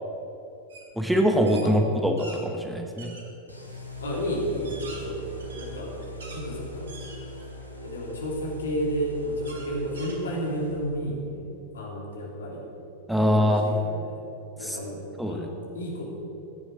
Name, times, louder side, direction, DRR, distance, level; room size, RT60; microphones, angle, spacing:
sound 1, 0.7-0.9 1.2-2.4 3.0-3.3 3.9-4.0 4.5-6.4 6.9-7.6 8.1-8.2 9.4-10.7, right 2 dB, 65° right, 2.5 m, -45 dB
voice 1, 1.0-3.2 13.1-13.7 14.6-14.8 15.2-15.5, equal, ahead, 3 dB, 1.1 m, -23 dB
sound 2, 3.5-11.1, equal, 90° right, 2.2 m, -41 dB
voice 2, 4.0-5.9 6.3-6.9 7.8-11.5 11.7-12.7 13.2-14.2 14.6-15.0 15.3-16.1, equal, 65° left, -1 dB, 3.2 m, -32 dB
15.0 x 10.0 x 6.2 m, 2.9 s
figure-of-eight pair, 90°, 0 cm